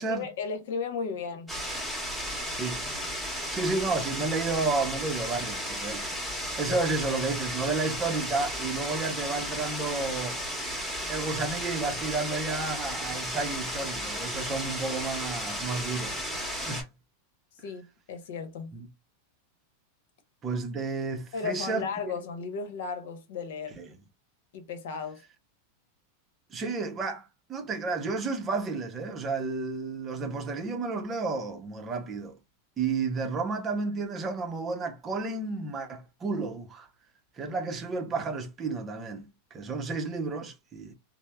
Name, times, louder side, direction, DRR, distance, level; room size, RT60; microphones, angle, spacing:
voice 1, 0.0-1.5 6.6-6.9 17.6-18.7 21.3-23.8 24.5-25.2, left 5 dB, 70° left, 0.9 m, -35 dB
sound 1, 1.5-16.8, equal, 5° right, 1.1 m, -34 dB
voice 2, 2.5-2.9 3.5-6.1 6.6-10.4 11.1-16.9 18.7-18.9 20.4-22.2 23.8-23.9 26.5-32.4 32.8-36.9 37.4-40.9, right 3 dB, 25° right, 0.6 m, -31 dB
3.1 x 2.0 x 2.2 m
supercardioid pair, 140°, 0 cm